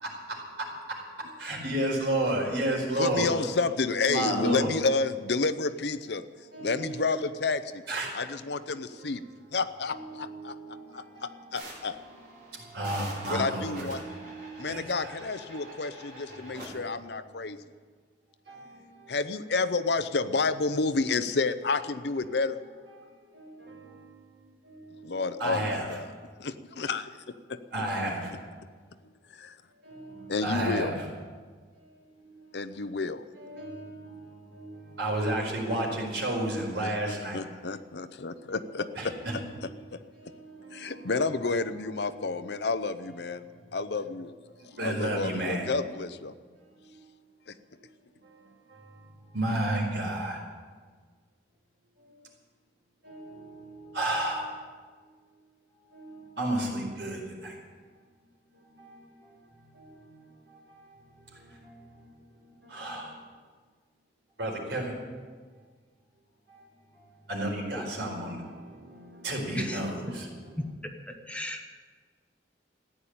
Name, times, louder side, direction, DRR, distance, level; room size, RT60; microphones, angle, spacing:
voice 1, 0.0-0.7 1.2-3.3 4.1-4.7 6.5-7.1 7.9-8.3 8.7-9.0 9.9-11.5 12.1-15.2 15.5-15.7 18.5-19.2 23.3-25.9 27.7-28.3 29.8-30.9 32.0-32.4 33.4-37.4 38.9-39.3 40.1-41.1 42.1-42.2 43.4-43.7 44.6-45.7 46.7-47.0 47.8-47.9 48.2-48.4 48.7-50.4 52.0-52.1 53.0-54.6 55.9-57.5 58.1-58.2 58.5-63.2 64.4-64.9 66.5-66.6 66.9-70.6, right 1 dB, 75° right, 4.7 m, -34 dB
voice 2, 3.0-6.2 6.6-7.8 8.1-9.2 9.5-10.6 10.9-12.0 13.3-14.0 14.6-17.6 19.1-22.6 25.0-26.1 26.4-27.6 29.3-29.6 30.3-30.9 32.5-33.2 36.8-39.1 39.9-40.0 40.7-43.4 43.7-44.3 44.8-46.3 47.5-47.6, left 4 dB, 65° left, 0.7 m, -30 dB
sound 1, 11.5-16.7, right 1 dB, 50° right, 5.5 m, -46 dB
voice 3, 71.3-71.7, left 1 dB, 5° left, 1.0 m, -34 dB
14.5 x 10.0 x 8.7 m
head